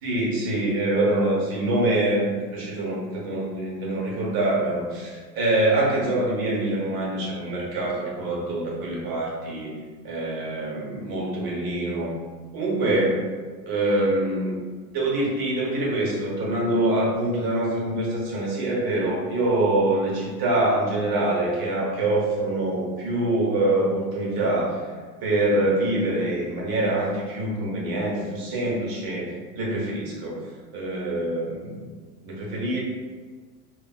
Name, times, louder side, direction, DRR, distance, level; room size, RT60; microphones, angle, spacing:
voice 1, 0.0-9.7 10.0-12.1 12.5-13.2 13.7-14.6 14.9-24.8 25.2-30.4 30.7-31.8 32.2-32.8, right 1 dB, 45° right, -3 dB, 1.0 m, -25 dB
3.0 x 2.2 x 2.3 m, 1.5 s
hypercardioid pair, 90°, 48 cm